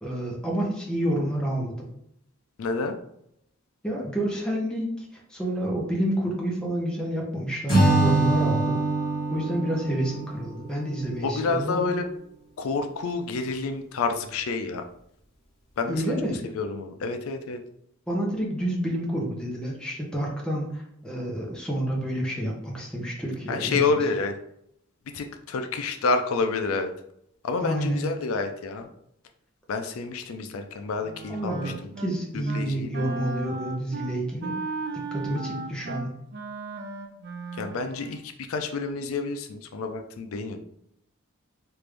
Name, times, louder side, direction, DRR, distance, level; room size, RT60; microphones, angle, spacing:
voice 1, 0.0-1.9 3.8-8.8 9.3-11.9 15.9-16.5 18.1-24.0 27.6-28.1 31.3-34.5 34.9-36.1, right 1 dB, 5° left, -3 dB, 0.6 m, -29 dB
voice 2, 2.6-3.0 11.2-12.0 12.6-14.8 15.8-16.1 16.5-17.6 23.5-24.4 25.1-26.9 27.4-28.9 29.7-31.9 32.3-33.1 37.5-40.6, left 4 dB, 75° left, 6 dB, 0.4 m, -29 dB
Acoustic guitar / Strum, 7.7-11.0, right 2 dB, 20° left, 1.4 m, -24 dB
Wind instrument woodwind instrument, 31.0-32.1 32.4-32.7 32.9-38.2, right 3 dB, 50° right, 0.3 m, -36 dB
3.2 x 2.5 x 3.3 m, 0.75 s
head